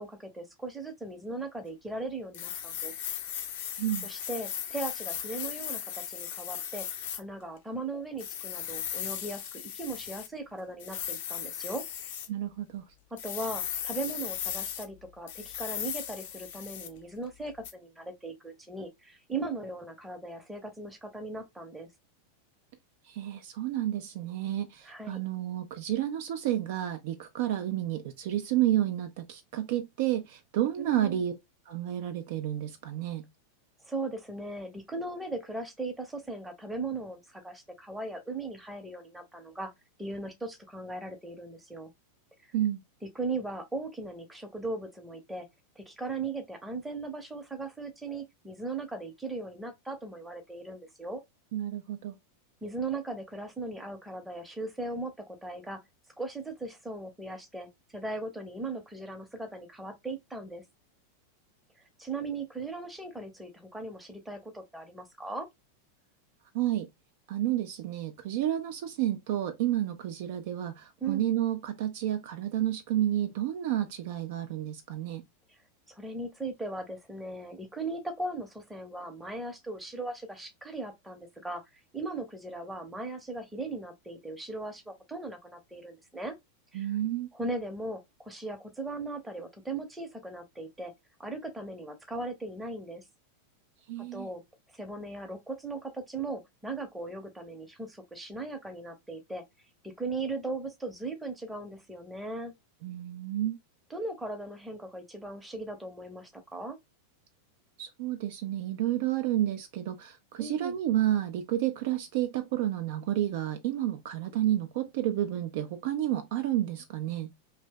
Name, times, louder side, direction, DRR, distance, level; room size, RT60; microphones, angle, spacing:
voice 1, 0.0-2.9 4.0-6.9 7.1-11.8 13.1-21.9 24.9-25.2 30.8-31.2 33.8-39.7 40.0-41.9 42.4-42.5 43.2-45.5 45.8-51.2 52.6-55.8 56.2-60.6 62.0-65.5 71.0-71.3 75.5-75.6 75.9-81.6 81.9-86.3 86.7-86.9 87.3-90.9 91.2-93.0 94.0-94.4 94.7-99.4 99.8-102.5 103.9-106.8 110.4-110.8, right 2 dB, 5° right, 0.7 m, -38 dB
sound 1, 2.3-7.2 8.2-10.3 10.8-12.3 13.2-14.8 15.3-17.0 17.6-17.7, left 9 dB, 50° left, 0.5 m, -37 dB
voice 2, 12.3-12.8 23.0-31.3 31.7-33.3 42.5-42.8 51.5-52.1 66.5-66.9 67.3-75.2 86.7-87.3 93.9-94.3 102.8-103.6 107.8-117.3, right 12 dB, 50° right, 0.3 m, -30 dB
2.7 x 2.1 x 3.5 m
figure-of-eight pair, 90°, 0 cm